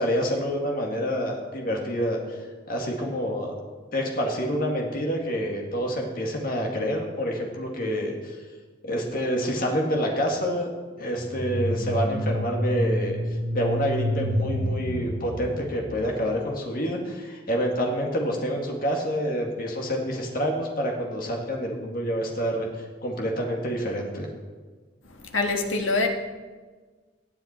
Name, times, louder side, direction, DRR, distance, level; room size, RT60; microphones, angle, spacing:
voice 1, 0.0-2.2 2.7-3.5 3.9-8.4 8.8-10.7 11.0-13.2 13.5-22.7 23.0-24.3, equal, 45° left, 0 dB, 2.0 m, -27 dB
sound 1, 11.2-16.1, equal, 5° right, 4.3 m, -28 dB
voice 2, 25.3-26.1, left 3 dB, 80° left, 3 dB, 1.7 m, -24 dB
18.0 x 9.6 x 4.4 m, 1.4 s
head